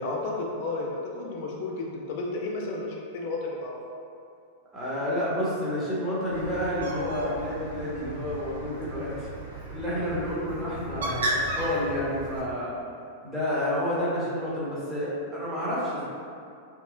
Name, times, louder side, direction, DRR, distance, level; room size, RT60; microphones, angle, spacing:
voice 1, 0.0-3.8, left 2 dB, 55° left, -1 dB, 0.5 m, -32 dB
voice 2, 4.7-9.3 9.7-12.7 13.2-16.1, left 1 dB, ahead, -10 dB, 0.9 m, -30 dB
Bird, 6.3-12.4, right 1 dB, 80° right, 0.4 m, -34 dB
2.8 x 2.0 x 2.5 m, 2.4 s
hypercardioid pair, 100°, 0 cm